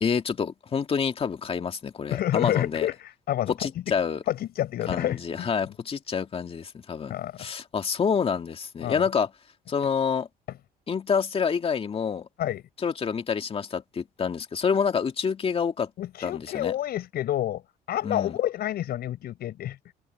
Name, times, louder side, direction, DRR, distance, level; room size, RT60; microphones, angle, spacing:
voice 1, 0.0-2.9 3.5-4.2 4.9-9.3 9.7-10.3 10.9-12.3 12.8-15.9 16.2-16.7 18.0-18.3, left 6 dB, 35° left, 2.1 m, -27 dB
voice 2, 2.1-3.9 4.3-5.5 7.1-7.5 8.8-9.0 12.4-12.6 16.0-17.6 17.9-19.8, left 12 dB, 65° left, 6.8 m, -29 dB
cardioid pair, 110°, 17 cm